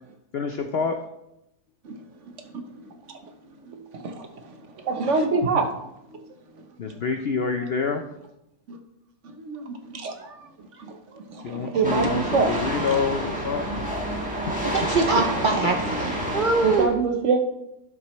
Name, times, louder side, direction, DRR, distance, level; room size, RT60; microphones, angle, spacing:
voice 1, 0.3-1.0 6.8-8.0 11.4-13.8 14.7-14.9, left 5 dB, 65° left, 6 dB, 0.6 m, -27 dB
voice 2, 3.1-5.7 6.1-6.3 7.6-7.7 8.7-8.8 9.2-10.5 10.8-12.7 16.6-17.4, right 4 dB, 55° right, 6 dB, 1.1 m, -27 dB
sound 1, 11.8-16.9, right 1 dB, 5° right, 2.0 m, -29 dB
voice 3, 14.6-16.9, right 3 dB, 80° right, 5 dB, 0.4 m, -23 dB
11.5 x 7.4 x 3.1 m, 0.86 s
omnidirectional pair, 1.7 m